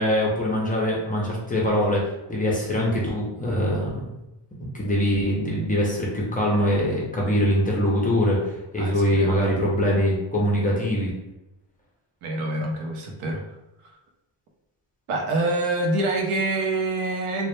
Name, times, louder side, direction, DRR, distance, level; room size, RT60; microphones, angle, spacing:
voice 1, 0.0-4.0 4.6-11.1, equal, 20° left, -3 dB, 0.4 m, -23 dB
voice 2, 8.8-9.4 12.2-13.4 15.1-17.5, right 2 dB, 80° right, 2 dB, 0.6 m, -26 dB
2.1 x 2.0 x 2.9 m, 0.91 s
cardioid pair, 125°, 49 cm